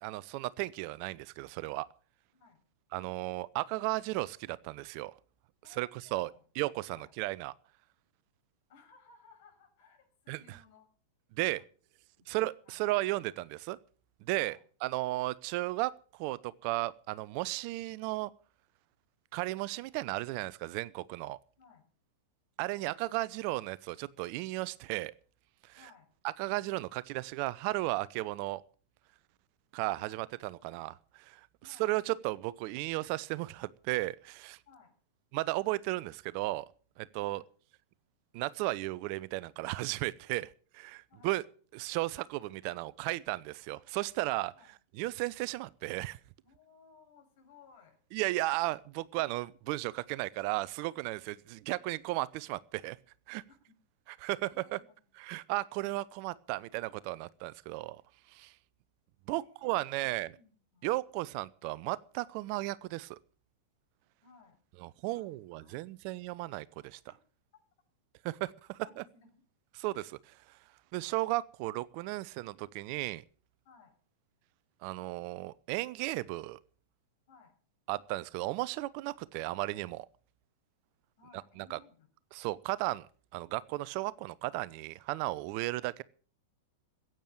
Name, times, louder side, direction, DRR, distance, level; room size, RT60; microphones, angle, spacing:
voice 1, 0.0-1.9 2.9-5.1 5.7-6.3 6.6-7.5 10.3-10.6 11.4-11.6 12.3-13.8 14.3-15.9 16.2-18.3 19.3-21.4 22.6-25.1 25.7-25.8 26.4-28.6 29.7-31.4 31.8-34.6 35.3-36.7 37.0-37.4 38.3-40.5 40.7-41.4 41.7-44.5 45.0-46.2 48.1-53.0 53.3-53.4 54.2-54.8 55.2-58.0 58.3-58.5 59.3-60.3 60.8-63.2 64.8-67.0 68.2-68.9 69.7-70.2 70.9-73.2 74.8-76.6 77.9-80.1 81.7-81.8 82.3-83.1 83.3-86.0, right 19 dB, 45° right, 0.6 m, -35 dB
voice 2, 5.6-6.4 6.9-7.1 8.7-10.9 11.4-11.6 12.2-12.8 14.3-14.6 21.6-21.9 25.7-26.1 29.9-30.2 30.6-30.7 31.6-31.9 34.7-34.9 37.2-37.4 41.1-41.4 44.5-44.7 46.4-48.0 53.5-53.6 54.4-55.1 59.3-60.9 62.5-62.6 64.2-64.6 65.0-65.8 67.0-67.1 68.8-69.4 73.6-73.9 77.3-77.5 81.2-82.1, left 5 dB, 50° left, 6.4 m, -60 dB
15.5 x 9.0 x 7.9 m
figure-of-eight pair, 95°, 0 cm